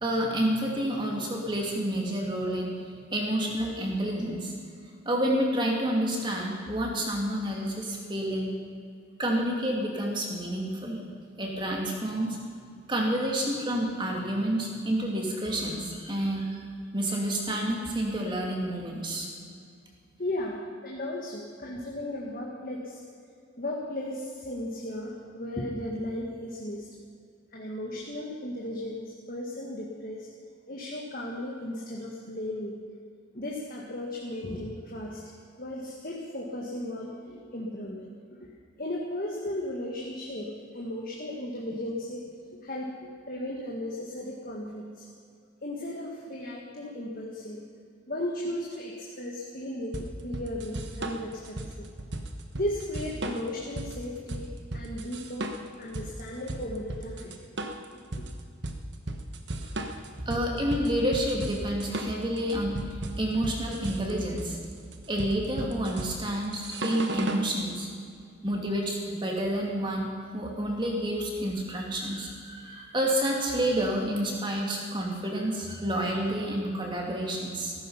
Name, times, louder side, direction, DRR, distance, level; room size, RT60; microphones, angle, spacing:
voice 1, 0.0-2.7 3.1-4.5 5.1-8.5 9.2-11.0 11.4-12.4 12.9-16.5 16.9-19.3 60.2-62.8 63.2-64.6 65.1-67.9 68.4-77.7, right 1 dB, 25° right, -1 dB, 2.5 m, -29 dB
voice 2, 20.2-23.0 23.6-26.9 27.5-30.3 30.7-32.8 33.3-35.2 35.6-38.1 38.4-38.5 38.8-42.2 42.5-45.1 45.6-47.6 48.1-51.9 52.5-54.5 54.7-55.5 55.8-57.4 58.2-58.3 59.6-59.7, left 1 dB, 45° left, -2 dB, 1.7 m, -35 dB
sound 1, 49.9-67.5, right 1 dB, 60° right, 1.2 m, -36 dB
15.5 x 14.5 x 5.7 m, 2.3 s
head